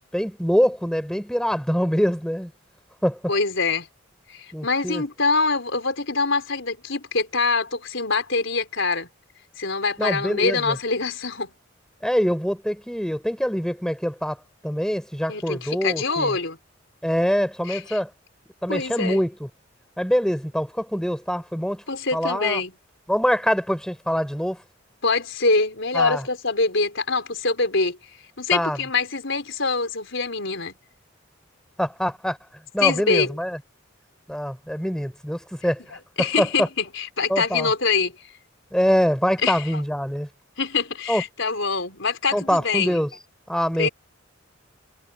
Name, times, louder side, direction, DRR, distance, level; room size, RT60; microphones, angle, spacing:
voice 1, 0.1-2.5 3.0-3.2 4.5-5.0 10.0-10.8 12.0-16.3 17.0-18.1 18.6-19.5 20.0-21.8 22.1-22.6 23.1-24.6 25.9-26.2 28.5-28.8 31.8-32.4 32.7-33.6 34.3-35.8 36.2-36.7 37.3-37.7 38.7-40.3 41.1-41.2 42.3-43.1 43.5-43.9, equal, 5° left, 4.4 m, -24 dB
voice 2, 3.3-3.9 4.3-9.1 9.6-11.5 15.3-16.6 17.7-18.0 18.7-19.2 21.9-22.7 25.0-28.0 28.4-30.7 32.8-33.3 36.2-38.3 39.4-39.8 40.6-43.0 43.7-43.9, left 4 dB, 65° left, 4.7 m, -24 dB
head